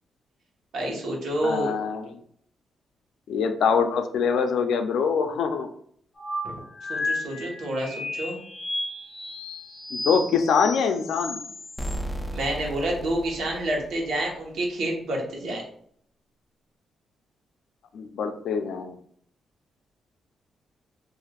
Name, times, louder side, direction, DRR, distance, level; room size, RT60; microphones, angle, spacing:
voice 1, 0.7-1.7 6.4-6.5 6.9-8.4 12.3-15.6, right 1 dB, 70° right, -1 dB, 1.0 m, -28 dB
voice 2, 1.4-2.2 3.3-5.7 9.9-11.4 17.9-19.0, left 6 dB, 75° left, 7 dB, 0.4 m, -24 dB
sound 1, 6.2-12.0, left 2 dB, 25° left, 1.0 m, -33 dB
sound 2, 11.8-14.5, right 1 dB, 5° left, 0.3 m, -35 dB
3.3 x 2.4 x 2.3 m, 0.63 s
cardioid pair, 145°, 0 cm